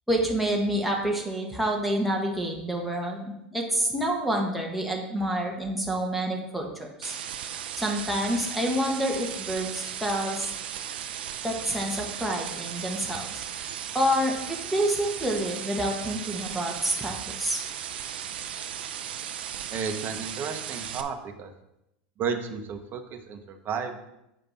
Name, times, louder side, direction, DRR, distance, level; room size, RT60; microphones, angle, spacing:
voice 1, 0.1-7.2 7.8-10.5 11.4-13.4 13.9-17.6, right 1 dB, ahead, -1 dB, 1.5 m, -28 dB
sound 1, 7.0-21.0, right 9 dB, 75° right, 0.5 m, -36 dB
voice 2, 19.7-21.5 22.2-24.0, right 6 dB, 40° right, 6 dB, 1.1 m, -33 dB
7.5 x 5.2 x 4.2 m, 0.86 s
hypercardioid pair, 90°, 5 cm